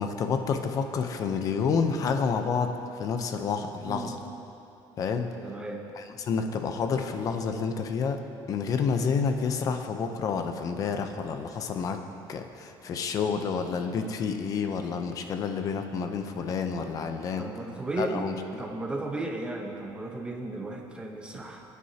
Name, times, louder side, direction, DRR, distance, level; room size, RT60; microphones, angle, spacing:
voice 1, 0.0-4.2 5.0-5.3 5.9-8.2 8.5-12.0 12.3-17.5 18.0-18.6, left 5 dB, 35° left, 6 dB, 0.7 m, -29 dB
voice 2, 5.4-5.9 17.4-18.3 18.6-21.6, right 2 dB, 10° right, 1 dB, 0.9 m, -34 dB
19.0 x 9.5 x 2.9 m, 2.9 s
cardioid pair, 170°, 10 cm